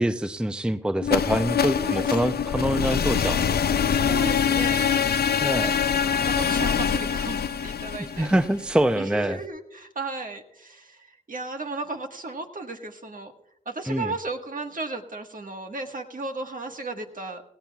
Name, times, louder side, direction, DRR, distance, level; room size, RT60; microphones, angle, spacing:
voice 1, 0.0-3.4 5.4-5.8 8.2-9.4 13.9-14.1, right 1 dB, 5° right, 10 dB, 0.6 m, -25 dB
sound 1, 1.0-9.0, left 7 dB, 70° left, 0.5 m, -24 dB
voice 2, 1.7-2.1 3.9-5.0 5.6-8.3 9.0-13.3 13.6-17.4, right 3 dB, 55° right, 4 dB, 1.6 m, -35 dB
18.0 x 16.0 x 2.4 m, 0.80 s
cardioid pair, 45°, 17 cm